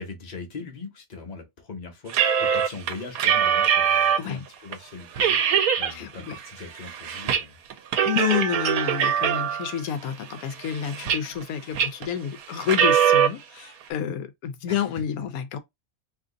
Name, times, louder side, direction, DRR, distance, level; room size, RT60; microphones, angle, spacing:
voice 1, 0.0-7.6 14.7-14.8, left 4 dB, 35° left, 0.9 m, -40 dB
sound 1, 2.1-4.3 4.7-4.8 5.2-5.9 6.3-7.4 7.7-9.8 10.3-11.4 11.8-12.1 12.6-13.3, right 8 dB, 80° right, 1.1 m, -22 dB
voice 2, 5.9-6.4 8.0-15.6, left 9 dB, 80° left, 1.1 m, -29 dB
2.8 x 2.5 x 3.7 m
omnidirectional pair, 1.5 m